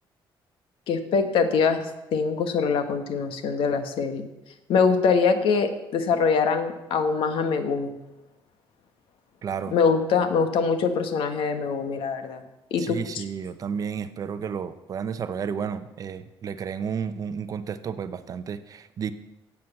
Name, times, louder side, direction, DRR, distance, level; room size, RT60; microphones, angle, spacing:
voice 1, 0.9-4.3 4.7-8.0 9.7-12.4 12.7-13.2, left 5 dB, 80° left, 8 dB, 1.6 m, -23 dB
voice 2, 9.4-9.7 12.8-19.1, right 7 dB, 40° right, 11 dB, 0.8 m, -32 dB
16.5 x 7.9 x 7.2 m, 0.96 s
cardioid pair, 170°, 9 cm